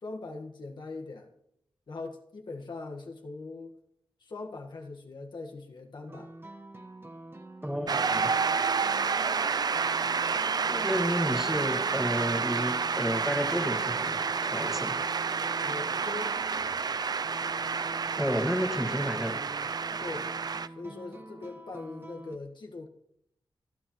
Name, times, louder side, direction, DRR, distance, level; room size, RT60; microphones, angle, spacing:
voice 1, 0.0-1.3 1.9-3.8 4.2-6.3 10.3-10.5 15.6-16.4 20.0-20.3 20.7-22.9, left 3 dB, 65° left, 2 dB, 1.6 m, -41 dB
sound 1, 6.1-22.4, right 1 dB, 25° right, 1.3 m, -47 dB
voice 2, 7.6-8.3 10.7-15.0 18.2-19.4, equal, 5° right, 4 dB, 1.9 m, -31 dB
Shout / Cheering / Applause, 7.9-20.7, right 5 dB, 50° right, 0.4 m, -29 dB
28.0 x 9.4 x 3.1 m, 0.75 s
wide cardioid pair, 95°, 9 cm